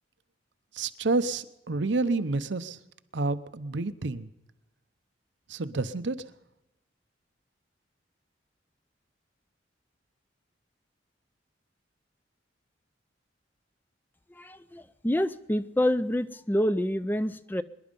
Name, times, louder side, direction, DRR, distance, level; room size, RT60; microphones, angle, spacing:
voice 1, 0.7-2.8 3.1-4.3 5.5-6.2, right 3 dB, 70° right, 12 dB, 0.8 m, -29 dB
voice 2, 14.3-17.6, left 1 dB, 10° left, 13 dB, 0.4 m, -27 dB
24.0 x 11.0 x 5.3 m, 0.94 s
head